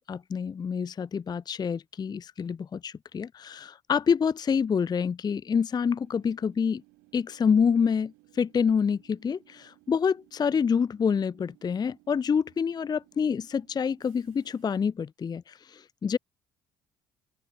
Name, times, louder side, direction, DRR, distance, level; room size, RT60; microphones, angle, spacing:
voice 1, 0.1-6.8 7.1-16.2, left 6 dB, 30° left, 0.5 m, -27 dB
Train / Subway metro underground, 6.0-14.8, right 24 dB, 80° right, 6.9 m, -61 dB
open air
hypercardioid pair, 60°, 14 cm